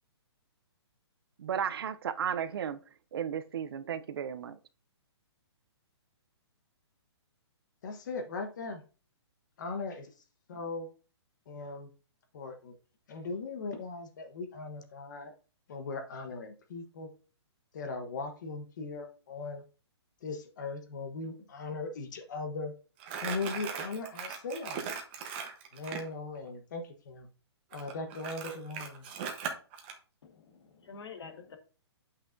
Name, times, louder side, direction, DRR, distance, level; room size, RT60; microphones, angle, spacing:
voice 1, 1.4-2.8 3.1-4.6, right 8 dB, 55° right, 0.6 m, -34 dB
voice 2, 7.8-8.8 9.6-10.1 10.5-10.9 11.5-11.9 12.3-12.7 13.1-15.3 15.7-17.1 17.7-19.6 20.2-22.7 23.2-24.8 25.7-27.3 27.7-29.0, left 3 dB, 40° left, 1.1 m, -39 dB
Crumpling crinkling, 23.0-26.1 27.7-29.9, right 7 dB, 20° right, 1.0 m, -39 dB
voice 3, 30.2-31.6, left 5 dB, 65° left, 1.6 m, -47 dB
8.7 x 5.7 x 2.6 m
hypercardioid pair, 170°, 15 cm